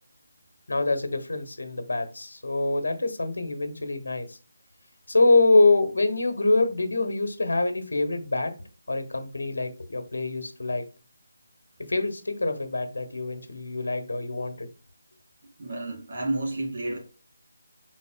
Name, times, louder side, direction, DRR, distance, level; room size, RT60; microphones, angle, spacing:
voice 1, 0.7-4.4 5.1-8.5 8.9-10.8 11.9-14.7, left 2 dB, 85° left, 1.1 m, -25 dB
voice 2, 15.6-17.0, right 2 dB, 45° right, 2.0 m, -30 dB
5.4 x 4.0 x 2.2 m
figure-of-eight pair, 170°, 0 cm